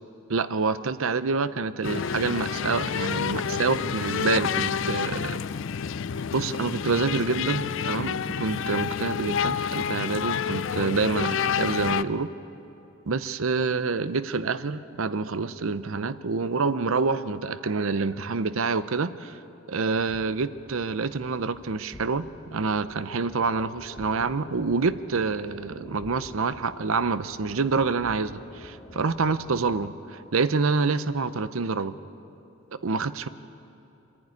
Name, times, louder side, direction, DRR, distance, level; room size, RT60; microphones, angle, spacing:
voice 1, 0.3-5.4 6.3-12.3 13.1-19.4 19.7-31.9 32.8-33.3, right 4 dB, 65° right, 14 dB, 0.6 m, -27 dB
sound 1, 1.8-12.0, left 7 dB, 55° left, 0.4 m, -29 dB
sound 2, 19.9-29.9, left 1 dB, 25° left, 0.7 m, -47 dB
25.5 x 11.0 x 9.7 m, 2.9 s
head